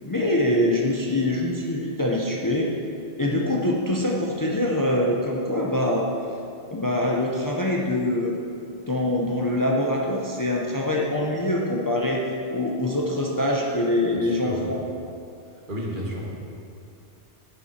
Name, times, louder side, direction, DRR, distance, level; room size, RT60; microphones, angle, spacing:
voice 1, 0.0-2.7 3.2-6.1 6.7-8.4 8.9-12.2 12.5-14.8, left 1 dB, 20° left, -2 dB, 0.8 m, -24 dB
voice 2, 14.1-14.7 15.7-16.3, equal, 50° right, -2 dB, 1.6 m, -32 dB
11.0 x 7.0 x 4.4 m, 2.5 s
omnidirectional pair, 1.1 m